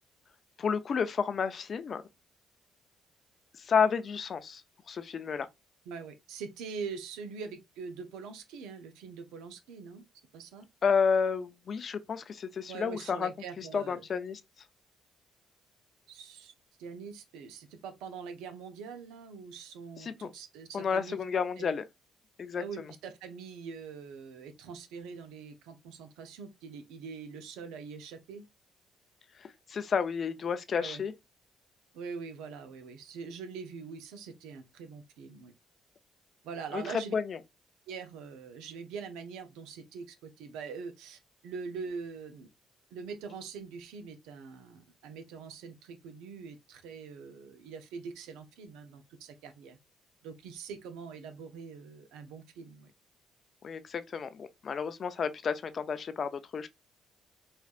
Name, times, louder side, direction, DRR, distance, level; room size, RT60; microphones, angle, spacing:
voice 1, 0.6-2.0 3.6-4.6 4.9-5.5 10.8-13.3 13.6-14.4 20.0-20.1 20.7-21.8 22.4-22.6 29.4-31.1 36.7-37.4 53.6-56.7, left 6 dB, 55° left, 0.5 m, -31 dB
voice 2, 5.9-10.0 10.3-10.7 12.7-14.1 16.1-16.5 16.8-21.2 21.6-21.7 22.5-28.4 30.8-31.0 31.9-35.5 36.4-37.1 37.9-42.5 42.9-49.8 50.2-52.9, right 5 dB, 85° right, 0.6 m, -43 dB
4.4 x 2.4 x 2.4 m
supercardioid pair, 60°, 0 cm